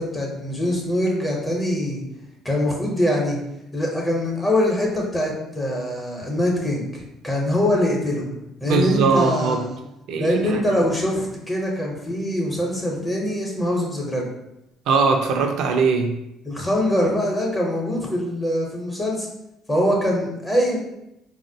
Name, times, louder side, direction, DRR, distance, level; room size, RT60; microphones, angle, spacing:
voice 1, 0.0-2.0 2.4-3.4 3.7-8.3 8.6-9.8 10.2-14.3 16.5-19.3 19.7-20.8, left 1 dB, 15° left, -2 dB, 0.7 m, -23 dB
voice 2, 8.6-9.6 10.1-10.8 14.9-16.2, right 4 dB, 70° right, 4 dB, 0.4 m, -21 dB
3.8 x 2.0 x 2.6 m, 0.85 s
cardioid pair, 90°, 0 cm